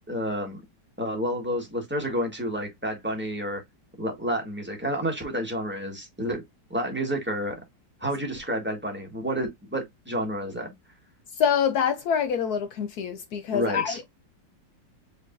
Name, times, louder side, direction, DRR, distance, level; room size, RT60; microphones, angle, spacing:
voice 1, 0.1-0.6 1.0-3.6 4.0-6.4 6.7-7.6 8.0-10.7 13.5-14.0, equal, 5° right, 1.2 m, -30 dB
voice 2, 11.4-14.0, left 7 dB, 75° left, 0.9 m, -25 dB
5.1 x 3.9 x 2.5 m
omnidirectional pair, 2.2 m